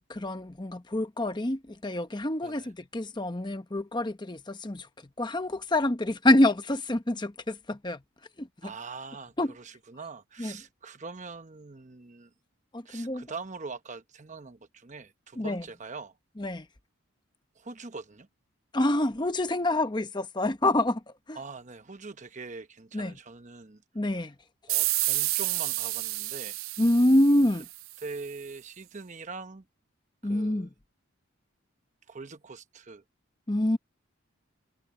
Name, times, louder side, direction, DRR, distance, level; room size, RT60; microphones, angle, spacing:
voice 1, 0.1-4.9 5.2-8.0 8.4-8.7 9.4-9.5 10.4-10.5 12.7-13.3 15.4-15.6 16.4-16.7 18.7-21.0 21.3-21.4 22.9-23.1 23.9-24.3 26.8-27.6 30.2-30.7 33.5-33.8, left 1 dB, 20° left, 0.8 m, -26 dB
voice 2, 8.6-12.3 12.8-16.2 17.5-18.3 21.3-23.8 24.7-26.6 28.0-29.6 30.2-30.7 32.1-33.0, right 4 dB, 35° right, 1.0 m, -43 dB
sound 1, 24.7-28.0, right 18 dB, 80° right, 0.5 m, -30 dB
head